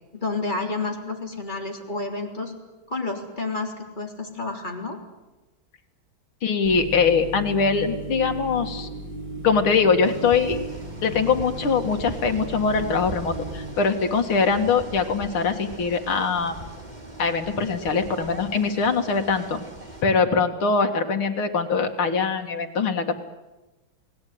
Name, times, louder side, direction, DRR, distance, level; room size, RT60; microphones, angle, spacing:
voice 1, 0.1-2.5 2.9-5.0, left 3 dB, 20° left, 2 dB, 3.7 m, -30 dB
voice 2, 6.4-8.9 9.4-10.6 11.0-16.6 17.2-19.6 20.0-23.2, left 5 dB, 85° left, 5 dB, 2.8 m, -22 dB
sound 1, 6.6-13.7, right 2 dB, 45° left, 7.6 m, -36 dB
sound 2, 10.0-20.0, right 2 dB, 20° right, 3.6 m, -40 dB
29.5 x 19.5 x 9.5 m, 1.1 s
omnidirectional pair, 2.2 m